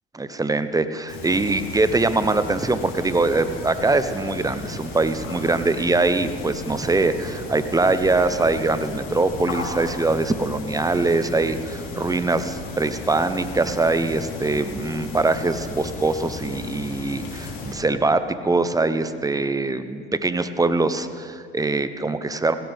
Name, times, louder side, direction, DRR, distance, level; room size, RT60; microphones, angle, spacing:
voice 1, 0.1-22.5, right 3 dB, 10° right, 11 dB, 0.8 m, -23 dB
sound 1, 1.1-17.7, left 3 dB, 65° left, 3.9 m, -35 dB
18.0 x 16.5 x 3.6 m, 2.1 s
hypercardioid pair, 75°, 32 cm